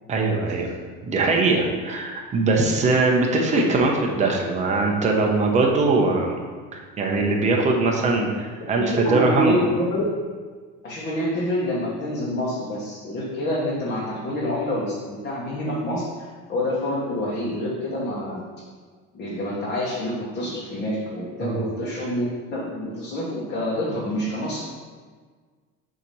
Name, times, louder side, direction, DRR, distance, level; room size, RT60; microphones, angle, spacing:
voice 1, 0.1-0.7 1.0-6.3 7.0-9.6 21.4-21.6, right 3 dB, 25° right, 0 dB, 0.9 m, -21 dB
voice 2, 8.8-10.1 10.8-18.4 19.1-24.6, left 1 dB, 30° left, -6 dB, 1.2 m, -27 dB
7.4 x 3.0 x 5.4 m, 1.5 s
cardioid pair, 155°, 30 cm